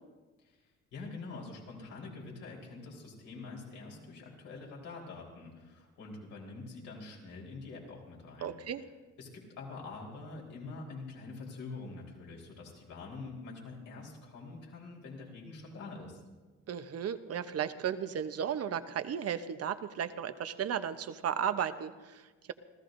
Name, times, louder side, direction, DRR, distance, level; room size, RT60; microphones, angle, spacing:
voice 1, 0.4-8.6 9.2-16.2, left 3 dB, 85° left, -2 dB, 4.0 m, -45 dB
voice 2, 8.4-8.8 16.7-22.5, right 8 dB, 55° right, 11 dB, 0.8 m, -35 dB
27.5 x 14.5 x 2.6 m, 1.3 s
cardioid pair, 90°, 30 cm